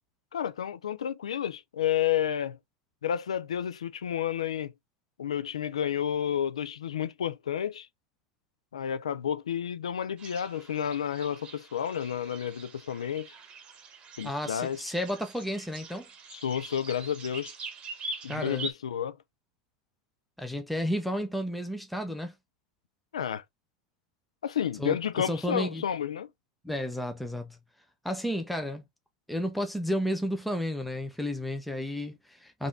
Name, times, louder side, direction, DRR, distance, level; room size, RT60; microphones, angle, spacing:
voice 1, 0.3-2.6 3.0-4.7 5.2-7.9 8.7-13.3 14.2-14.8 16.3-17.5 18.2-19.2 23.1-23.4 24.4-26.3, left 9 dB, 85° left, 0.3 m, -31 dB
sound 1, 10.2-18.7, right 3 dB, 35° right, 1.0 m, -44 dB
voice 2, 14.2-16.1 18.3-18.7 20.4-22.3 24.8-25.8 26.6-27.6 28.0-28.8 29.3-32.7, equal, ahead, 0.6 m, -32 dB
3.4 x 2.5 x 3.2 m
hypercardioid pair, 90°, 3 cm